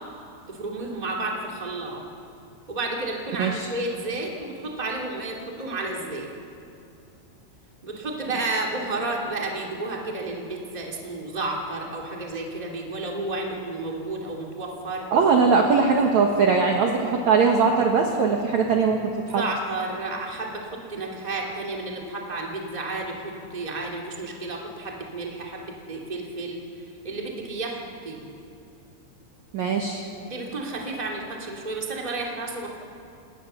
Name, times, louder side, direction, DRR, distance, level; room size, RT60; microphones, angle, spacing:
voice 1, 0.5-2.0 2.7-6.3 7.8-15.1 19.3-26.6 27.0-28.2 30.2-32.7, right 2 dB, 15° right, -1 dB, 1.7 m, -31 dB
voice 2, 15.1-19.0 19.3-19.4 29.5-30.0, right 5 dB, 75° right, 2 dB, 1.6 m, -20 dB
28.5 x 18.5 x 7.0 m, 2.6 s
omnidirectional pair, 5.4 m